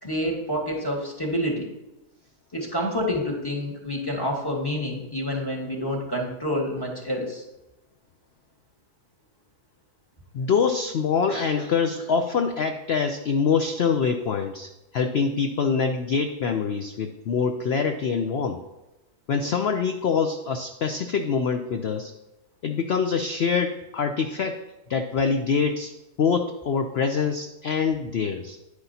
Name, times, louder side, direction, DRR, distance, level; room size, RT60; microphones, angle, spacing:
voice 1, 0.0-1.7 2.5-7.4, equal, 15° left, -1 dB, 1.5 m, -28 dB
voice 2, 10.3-18.6 19.3-22.1 22.6-24.6 24.9-25.9 26.2-28.6, left 5 dB, 75° left, 6 dB, 0.5 m, -25 dB
10.0 x 9.6 x 2.8 m, 0.98 s
omnidirectional pair, 1.7 m